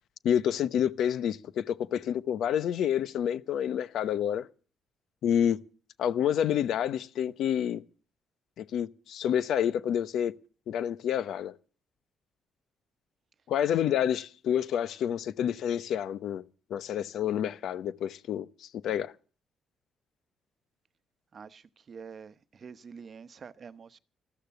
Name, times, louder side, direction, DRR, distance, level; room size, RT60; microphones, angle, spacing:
voice 1, 0.2-4.5 5.2-5.6 6.0-7.8 8.6-10.3 10.7-11.5 13.5-16.4 16.7-19.1, left 9 dB, 75° left, 0.9 m, -28 dB
voice 2, 21.3-24.0, right 6 dB, 45° right, 0.9 m, -47 dB
14.0 x 13.5 x 7.0 m
cardioid pair, 90°, 0 cm